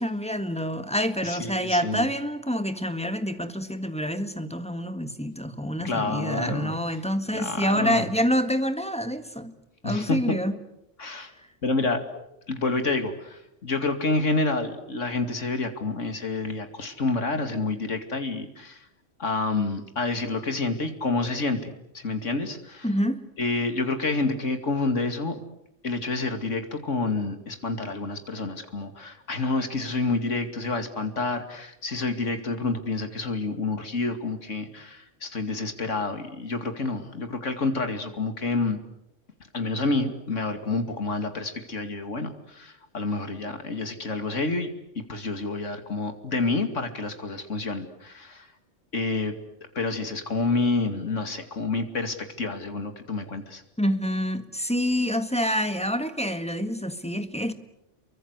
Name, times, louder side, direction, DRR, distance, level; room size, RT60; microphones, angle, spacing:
voice 1, 0.0-9.5 9.8-10.5 22.8-23.2 53.8-57.5, equal, 5° left, 9 dB, 1.6 m, -27 dB
voice 2, 1.2-2.1 5.8-6.7 7.3-8.1 9.8-10.4 11.0-11.3 11.6-18.8 19.2-22.9 23.4-25.3 25.8-38.8 39.5-44.7 44.9-48.5 48.9-49.3 49.7-53.6, left 3 dB, 85° left, 7 dB, 2.8 m, -28 dB
29.0 x 23.5 x 8.2 m, 0.82 s
omnidirectional pair, 1.2 m